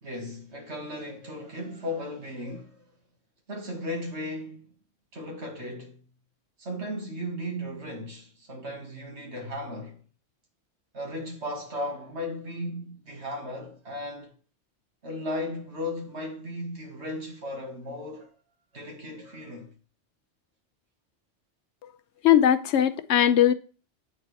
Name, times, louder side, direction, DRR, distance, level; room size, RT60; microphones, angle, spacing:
voice 1, 0.0-2.8 3.5-4.7 5.1-6.0 6.6-10.0 10.9-14.3 15.0-18.3 18.7-19.7, left 1 dB, 75° right, 2.1 m, -36 dB
voice 2, 22.2-23.5, left 10 dB, 80° left, 0.9 m, -20 dB
8.9 x 4.2 x 3.4 m
omnidirectional pair, 1.1 m